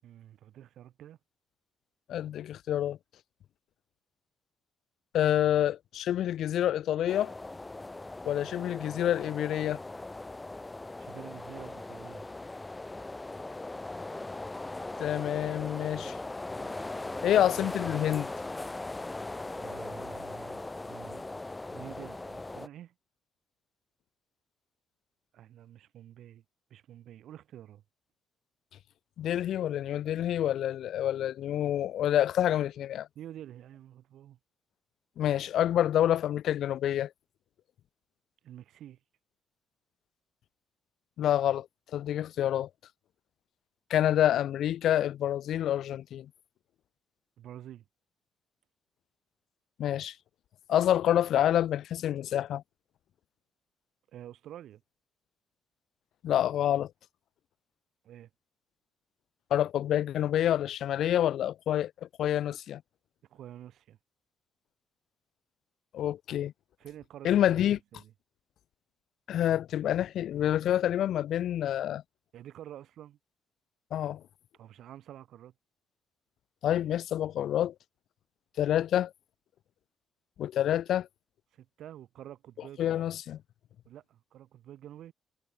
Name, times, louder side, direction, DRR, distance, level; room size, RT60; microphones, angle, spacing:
voice 1, 0.0-1.2 11.0-12.3 16.6-17.3 19.5-21.3 21.7-22.9 25.3-26.4 26.7-27.8 33.1-34.4 38.4-39.0 47.4-47.8 54.1-54.8 58.0-58.3 63.3-64.0 66.8-68.1 72.3-73.2 74.5-75.5 81.5-82.8 83.8-85.1, right 11 dB, 75° right, 8.0 m, -48 dB
voice 2, 2.1-3.0 5.1-7.3 8.2-9.8 15.0-16.2 17.2-18.3 29.2-33.1 35.2-37.1 41.2-41.7 41.9-42.7 43.9-46.3 49.8-50.1 50.7-52.6 56.2-56.9 59.5-61.9 62.2-62.8 65.9-66.5 67.2-67.8 69.3-72.0 73.9-74.2 76.6-77.7 78.6-79.1 80.4-81.1 82.8-83.4, left 11 dB, 75° left, 0.6 m, -27 dB
sound 1, 7.1-22.7, left 2 dB, 15° left, 2.7 m, -39 dB
cardioid pair, 90°, 0 cm